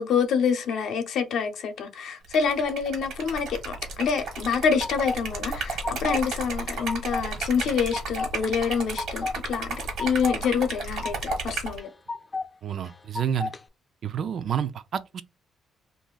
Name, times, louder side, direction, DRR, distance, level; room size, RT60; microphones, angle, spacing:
voice 1, 0.0-11.9, left 6 dB, 75° left, 0.6 m, -27 dB
Liquid, 2.2-11.8, right 3 dB, 80° right, 1.3 m, -33 dB
sound 1, 4.2-5.2 5.5-6.3 6.6-7.3 7.6-8.3 8.7-9.4 9.7-10.4 10.7-11.4 11.8-12.5 12.8-13.6, left 4 dB, 25° left, 0.4 m, -33 dB
voice 2, 12.6-13.5 14.0-15.2, right 8 dB, 60° right, 0.3 m, -29 dB
2.5 x 2.4 x 3.8 m
cardioid pair, 90°, 0 cm